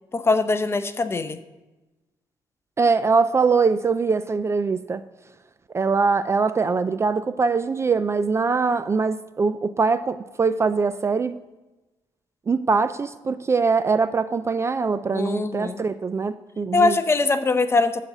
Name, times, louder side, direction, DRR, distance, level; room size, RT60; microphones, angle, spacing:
voice 1, 0.1-1.4 15.1-15.8 16.7-18.0, left 3 dB, 25° left, 0.6 m, -22 dB
voice 2, 2.8-5.0 5.7-11.4 12.5-17.0, right 4 dB, 25° right, 0.3 m, -22 dB
11.5 x 4.1 x 8.0 m
cardioid pair, 120°, 10 cm